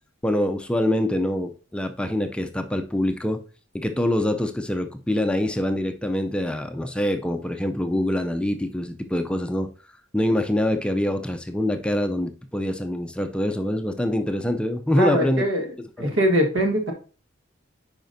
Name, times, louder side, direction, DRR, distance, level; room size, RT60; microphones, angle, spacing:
voice 1, 0.2-3.4 3.7-9.7 10.1-15.5 16.0-16.2, left 1 dB, 5° left, 6 dB, 0.4 m, -25 dB
voice 2, 15.0-15.7 16.0-16.9, equal, 70° right, 3 dB, 1.4 m, -22 dB
9.0 x 5.0 x 2.6 m, 0.38 s
head